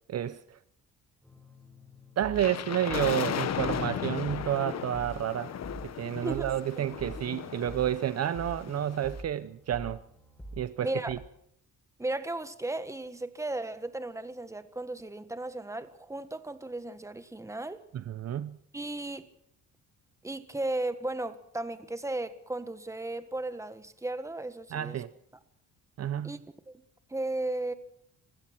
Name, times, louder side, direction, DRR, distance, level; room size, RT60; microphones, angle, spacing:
voice 1, 0.1-0.6 2.2-5.5 5.8-10.0 10.6-11.2 17.9-18.6 24.7-25.1 26.0-26.4, right 11 dB, 50° right, 0.8 m, -30 dB
sound 1, 1.2-11.1, right 1 dB, 5° left, 7.9 m, -47 dB
sound 2, 2.4-9.2, left 9 dB, 55° left, 1.3 m, -36 dB
voice 2, 6.2-6.9 10.8-11.1 12.0-17.8 18.7-19.3 20.2-25.0 26.2-26.4 26.7-26.8 27.1-27.7, right 2 dB, 10° right, 1.6 m, -35 dB
26.0 x 16.0 x 6.1 m
cardioid pair, 120°, 31 cm